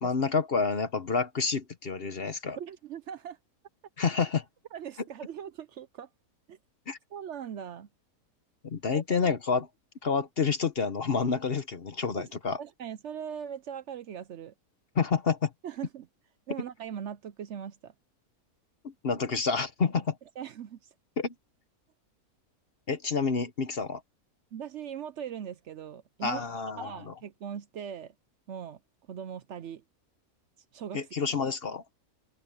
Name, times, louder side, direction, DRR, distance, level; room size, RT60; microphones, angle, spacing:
voice 1, 0.0-2.6 4.0-4.4 6.9-7.0 8.6-9.7 10.0-12.6 14.9-15.5 18.8-20.0 21.2-21.3 22.9-24.0 26.2-27.1 30.9-31.8, left 5 dB, 45° left, 1.1 m, -29 dB
voice 2, 2.6-3.4 4.7-6.1 6.5-6.6 7.1-7.9 8.9-9.3 12.1-12.3 12.6-14.5 15.6-16.1 16.5-17.9 20.4-20.8 24.5-26.4 26.8-28.1 28.5-28.8 29.1-29.8 30.7-31.0, right 8 dB, 60° right, 0.8 m, -40 dB
omnidirectional pair, 1.6 m